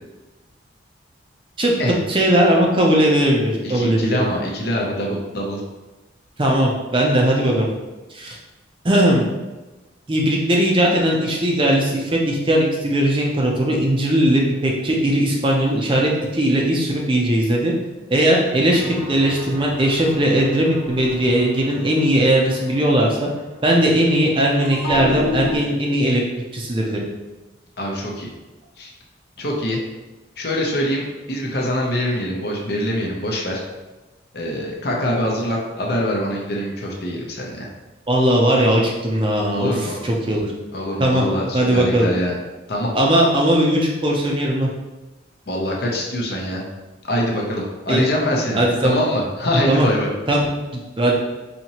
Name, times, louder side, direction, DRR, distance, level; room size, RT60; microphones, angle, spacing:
voice 1, 1.6-4.3 6.4-7.7 8.1-8.4 8.8-9.2 10.1-17.7 18.1-23.3 23.6-26.2 26.5-27.0 38.1-40.5 41.0-41.2 41.5-42.1 42.9-44.7 47.9-48.0 48.5-49.0 49.7-49.9 50.3-51.1, right 1 dB, 25° right, -1 dB, 0.5 m, -18 dB
voice 2, 3.6-5.6 27.8-28.3 28.8-28.9 29.4-29.8 30.4-33.6 34.3-37.7 39.5-40.0 40.7-42.4 42.7-42.9 45.5-46.6 47.1-50.1, left 1 dB, 55° left, -1 dB, 0.7 m, -24 dB
sound 1, 18.7-23.9 24.6-25.6, left 3 dB, 85° left, 0.9 m, -31 dB
4.2 x 2.8 x 2.9 m, 1.1 s
head